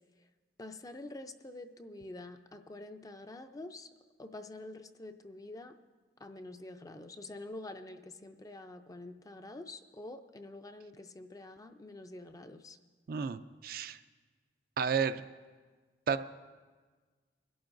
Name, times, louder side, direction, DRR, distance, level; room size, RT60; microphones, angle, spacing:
voice 1, 0.6-3.9 4.2-5.7 6.2-12.8, left 2 dB, 20° left, 7 dB, 0.4 m, -47 dB
voice 2, 13.1-14.0 14.8-15.2 16.1-16.2, right 6 dB, 55° right, 11 dB, 0.4 m, -32 dB
23.0 x 12.0 x 2.6 m, 1.4 s
head